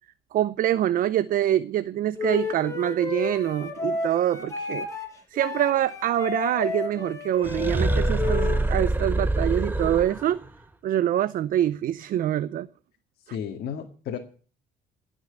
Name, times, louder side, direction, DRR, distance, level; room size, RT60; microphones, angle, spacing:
voice 1, 0.3-4.9 5.3-10.4 10.8-12.7, right 12 dB, 55° right, 0.6 m, -25 dB
Wind instrument woodwind instrument, 2.2-8.6, left 5 dB, 20° left, 5.7 m, -32 dB
sound 1, 7.4-10.5, right 2 dB, 10° right, 1.3 m, -25 dB
voice 2, 13.3-14.2, left 8 dB, 65° left, 2.0 m, -33 dB
17.5 x 6.4 x 8.8 m
cardioid pair, 110°, 17 cm